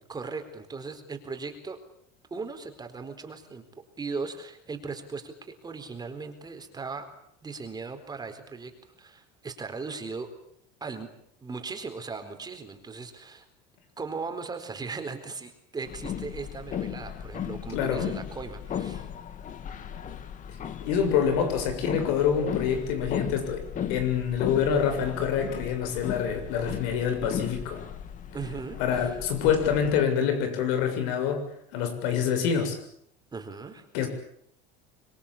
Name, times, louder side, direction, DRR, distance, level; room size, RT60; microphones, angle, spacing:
voice 1, 0.1-1.8 2.3-3.6 4.0-7.1 7.4-8.7 9.0-10.3 10.8-11.1 11.4-13.5 14.0-19.1 28.3-29.1 33.3-33.9, right 4 dB, 20° right, 6 dB, 4.2 m, -38 dB
sound 1, 15.8-30.0, left 9 dB, 40° left, 2.1 m, -36 dB
voice 2, 17.7-18.0 20.8-23.6 23.9-27.8 28.8-31.4 31.7-32.8 33.9-34.1, left 7 dB, 75° left, 7 dB, 7.1 m, -26 dB
26.0 x 22.0 x 8.7 m, 0.71 s
supercardioid pair, 125°, 21 cm